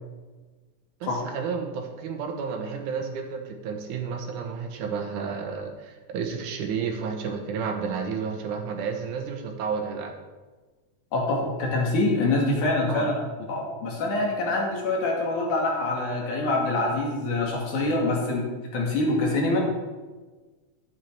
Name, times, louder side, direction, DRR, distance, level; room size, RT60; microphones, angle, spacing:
voice 1, 1.0-10.1 12.9-13.1, right 6 dB, 85° right, 4 dB, 2.6 m, -31 dB
voice 2, 11.1-13.1 13.5-19.6, left 2 dB, 80° left, -2 dB, 3.6 m, -25 dB
11.0 x 8.5 x 4.5 m, 1.3 s
omnidirectional pair, 3.5 m